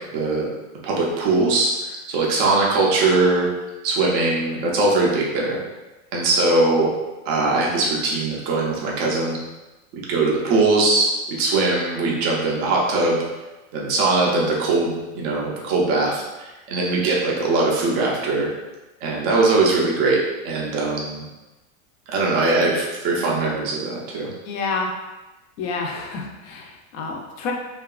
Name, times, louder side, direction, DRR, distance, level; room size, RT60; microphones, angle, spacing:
voice 1, 0.1-0.5 0.8-3.5 3.8-5.6 6.1-6.9 7.3-9.4 9.9-13.2 13.7-18.5 19.0-20.2 20.4-21.2 22.1-24.3, right 3 dB, 25° right, -3 dB, 0.3 m, -21 dB
voice 2, 24.5-24.9 25.6-27.5, left 4 dB, 50° left, 1 dB, 0.5 m, -28 dB
2.7 x 2.3 x 2.3 m, 1.1 s
supercardioid pair, 145°, 41 cm